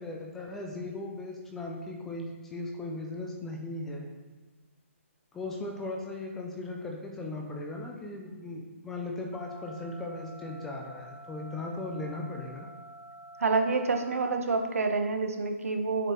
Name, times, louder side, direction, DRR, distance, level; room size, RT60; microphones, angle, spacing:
voice 1, 0.0-4.1 5.3-12.7, left 2 dB, 5° left, 0 dB, 0.3 m, -37 dB
sound 1, 9.3-14.3, right 1 dB, 65° left, 1.1 m, -49 dB
voice 2, 13.4-16.1, right 3 dB, 80° right, 5 dB, 1.0 m, -28 dB
7.7 x 4.8 x 3.0 m, 1.3 s
hypercardioid pair, 170°, 8 cm